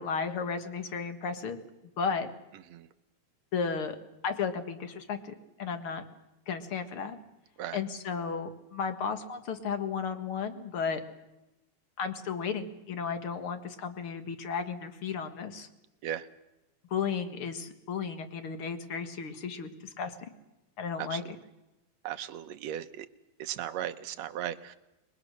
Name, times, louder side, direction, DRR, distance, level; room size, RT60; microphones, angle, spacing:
voice 1, 0.0-1.6 2.0-2.3 3.5-4.0 4.2-6.0 6.5-7.2 7.7-11.0 12.0-15.7 16.9-20.1 20.8-21.2, left 6 dB, 50° left, 8 dB, 2.3 m, -34 dB
voice 2, 21.0-21.3 22.0-23.1 23.4-24.8, right 11 dB, 70° right, 10 dB, 2.0 m, -36 dB
27.0 x 21.5 x 6.6 m, 0.96 s
omnidirectional pair, 3.4 m